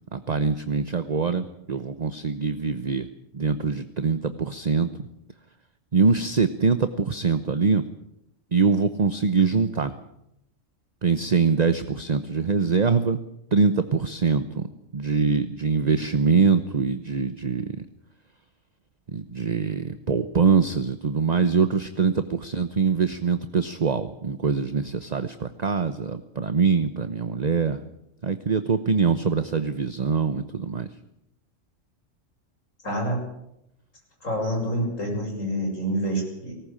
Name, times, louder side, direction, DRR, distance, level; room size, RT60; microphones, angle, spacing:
voice 1, 0.1-3.1 3.3-4.9 5.9-7.8 8.5-9.9 11.0-13.2 13.5-14.7 14.9-17.9 19.1-27.8 28.2-30.9, right 5 dB, 35° right, 11 dB, 0.9 m, -23 dB
voice 2, 32.8-33.2 34.2-36.5, right 1 dB, 75° left, 1 dB, 7.5 m, -27 dB
19.5 x 18.5 x 8.8 m, 0.82 s
omnidirectional pair, 1.4 m